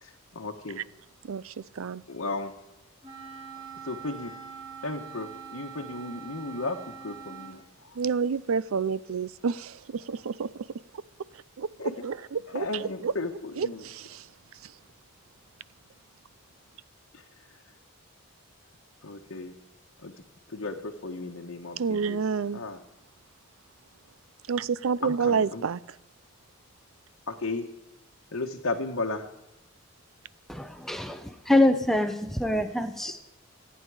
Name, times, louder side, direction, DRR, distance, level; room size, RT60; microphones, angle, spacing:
voice 1, 0.0-0.8 2.1-2.5 3.8-4.3 4.8-7.6 11.8-11.9 12.5-13.8 17.1-17.2 19.0-19.5 20.0-20.1 20.5-22.8 25.0-25.6 27.3-27.7 28.3-29.2, left 3 dB, 70° left, 1.1 m, -34 dB
Wind instrument woodwind instrument, 3.0-7.6, right 7 dB, 20° right, 5.6 m, -43 dB
voice 2, 8.0-9.7 10.1-10.5 11.6-11.7 12.0-12.7 13.0-13.1 13.6-14.0 21.8-22.6 24.5-25.8, right 6 dB, 75° right, 0.5 m, -28 dB
voice 3, 30.5-33.2, left 1 dB, ahead, 0.7 m, -25 dB
25.0 x 9.1 x 4.8 m
head